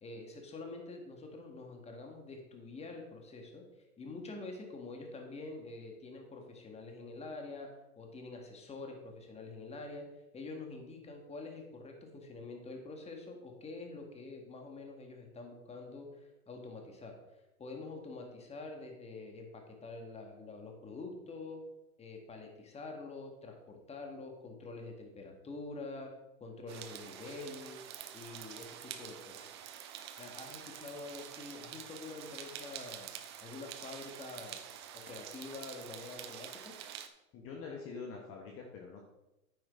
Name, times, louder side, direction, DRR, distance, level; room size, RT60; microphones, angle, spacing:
voice 1, 0.0-3.6 4.0-7.7 8.0-10.0 10.3-17.2 17.6-21.6 22.0-26.1 26.4-27.8 28.1-29.6 30.2-33.1 33.4-34.6 34.9-36.7, left 3 dB, 15° left, 2 dB, 1.8 m, -46 dB
sound 1, 26.7-37.1, right 10 dB, 20° right, 0.3 m, -47 dB
voice 2, 37.3-39.1, left 4 dB, 30° left, 0 dB, 1.4 m, -45 dB
9.2 x 8.9 x 3.8 m, 0.96 s
hypercardioid pair, 115°, 45 cm